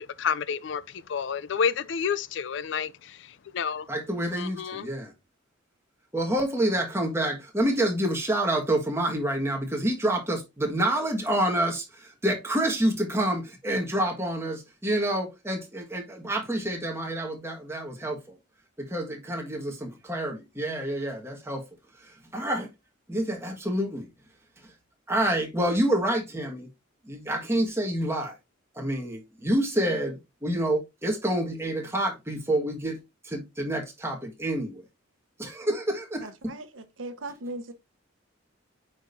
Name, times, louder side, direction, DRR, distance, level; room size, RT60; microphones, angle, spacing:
voice 1, 0.0-3.9 4.4-4.9, left 6 dB, 60° left, 0.4 m, -30 dB
voice 2, 3.9-5.1 6.1-18.2 18.8-21.6 22.0-22.7 23.1-24.1 25.1-26.7 27.0-28.3 28.7-33.0 33.2-34.8 35.4-36.5, right 1 dB, 10° right, 1.5 m, -28 dB
voice 3, 36.2-37.7, right 2 dB, 70° right, 1.0 m, -38 dB
8.7 x 5.3 x 2.6 m
head